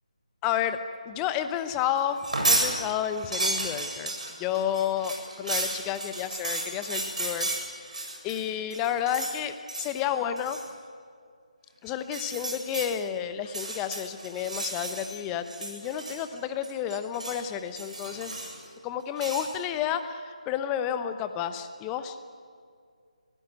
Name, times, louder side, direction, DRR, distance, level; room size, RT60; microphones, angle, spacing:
voice 1, 0.4-0.8 1.1-2.2 2.5-4.1 4.4-7.5 7.9-10.6 11.8-18.4 18.8-22.2, left 9 dB, 15° left, 10 dB, 0.8 m, -31 dB
sound 1, 2.1-2.7 3.0-8.4 8.7-9.4 9.7-10.0 10.4-10.7 12.0-12.9 13.4-15.2 15.5-16.4 16.6-17.4 17.8-18.6 19.2-19.5, right 2 dB, 65° right, 7.9 m, -32 dB
24.5 x 16.5 x 8.8 m, 2.2 s
figure-of-eight pair, 155°, 4 cm